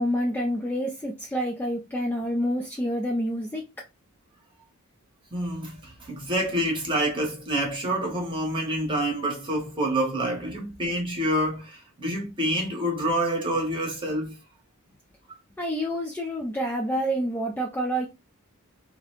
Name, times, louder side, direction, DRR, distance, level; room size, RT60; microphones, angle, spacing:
voice 1, 0.0-3.6 15.6-18.1, equal, 10° left, 0.3 m, -28 dB
voice 2, 5.3-14.4, right 1 dB, 20° right, 0.9 m, -27 dB
2.4 x 2.1 x 2.8 m
head